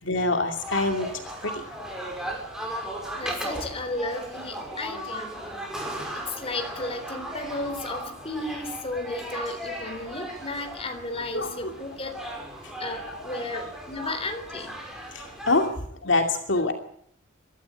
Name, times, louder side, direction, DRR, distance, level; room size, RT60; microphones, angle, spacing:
voice 1, 0.0-1.8 2.0-2.1 9.9-10.0 11.3-11.7 12.1-12.2 13.1-13.2 15.1-16.7, left 2 dB, 65° left, 4 dB, 2.6 m, -26 dB
sound 1, 0.6-15.7, right 1 dB, 5° right, 5.8 m, -37 dB
voice 2, 3.2-5.4 6.1-12.2 12.8-14.8, left 2 dB, 30° left, 7 dB, 3.6 m, -34 dB
23.5 x 13.5 x 10.0 m, 0.66 s
head